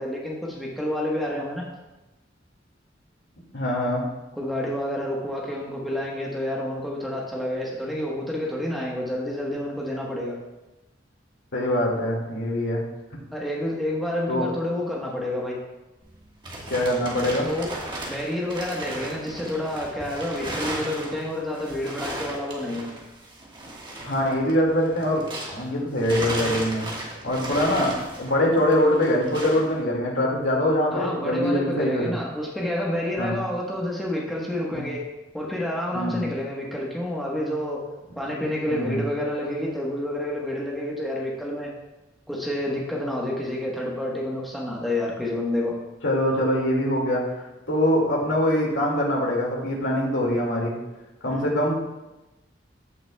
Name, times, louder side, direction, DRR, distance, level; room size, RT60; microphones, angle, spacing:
voice 1, 0.0-1.7 4.3-10.4 13.3-15.6 17.5-17.7 18.0-22.9 30.9-35.0 35.3-37.8 38.2-41.7 42.3-45.8 51.3-51.5, left 1 dB, ahead, -4 dB, 1.2 m, -29 dB
voice 2, 3.5-4.0 11.5-12.8 14.3-14.4 16.7-17.5 24.0-26.9 27.2-32.1 33.2-33.4 34.7-34.9 35.9-36.3 38.7-39.0 46.0-47.2 47.7-50.8 51.2-51.7, left 1 dB, 80° left, -2 dB, 2.2 m, -23 dB
sound 1, 16.0-25.7 26.0-29.7, right 1 dB, 25° right, 1.5 m, -35 dB
15.0 x 5.8 x 2.3 m, 1.0 s
head